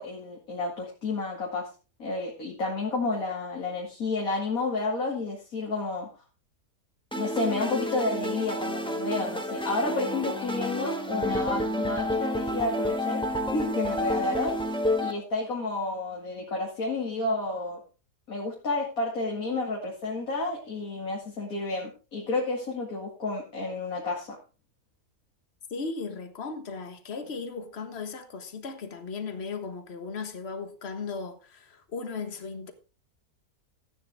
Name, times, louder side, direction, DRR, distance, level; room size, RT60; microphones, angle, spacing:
voice 1, 0.0-1.7 2.0-6.1 7.1-13.2 13.5-14.6 15.0-17.8 18.3-24.3, left 2 dB, 65° left, 2.7 m, -30 dB
sound 1, 7.1-15.1, left 1 dB, 5° left, 1.5 m, -30 dB
voice 2, 25.7-32.7, left 4 dB, 45° left, 1.6 m, -36 dB
14.0 x 9.4 x 3.5 m
omnidirectional pair, 1.6 m